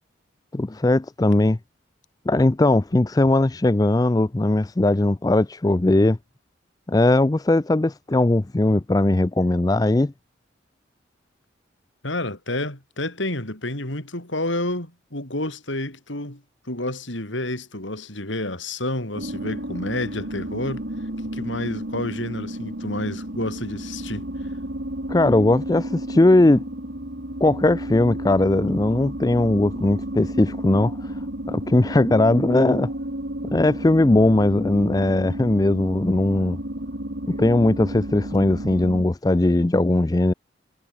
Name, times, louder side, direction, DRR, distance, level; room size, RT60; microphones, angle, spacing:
voice 1, 0.5-1.6 2.3-6.2 6.9-10.1 25.1-26.6 27.4-31.2 31.5-32.9 33.5-36.6 37.3-40.3, left 2 dB, 20° left, 0.4 m, -19 dB
voice 2, 12.0-16.4 16.7-20.9 21.3-24.3, left 1 dB, 75° left, 5.8 m, -29 dB
sound 1, 19.2-39.0, right 1 dB, 60° right, 3.0 m, -32 dB
head